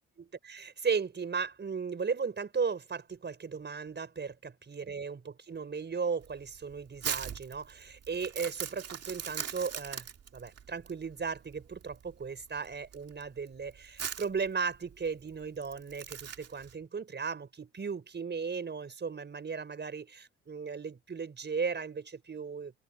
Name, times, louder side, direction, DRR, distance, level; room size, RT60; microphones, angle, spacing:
voice 1, 0.0-10.1 10.3-22.7, right 5 dB, 35° right, 5.1 m, -36 dB
Crumpling crinkling, 6.2-16.7, right 8 dB, 55° right, 2.1 m, -41 dB
open air
cardioid pair, 90°, 30 cm